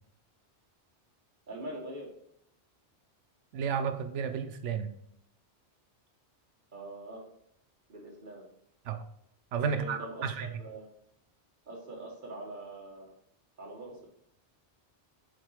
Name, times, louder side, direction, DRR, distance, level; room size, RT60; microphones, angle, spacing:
voice 1, 1.5-2.1 6.7-7.2 7.9-8.4 9.7-10.8 11.7-13.1 13.6-14.1, right 1 dB, 45° right, -2 dB, 1.7 m, -43 dB
voice 2, 3.5-4.9 8.9-9.0 9.5-10.5, right 6 dB, 85° right, 9 dB, 1.0 m, -32 dB
5.1 x 4.0 x 4.7 m, 0.72 s
omnidirectional pair, 1.2 m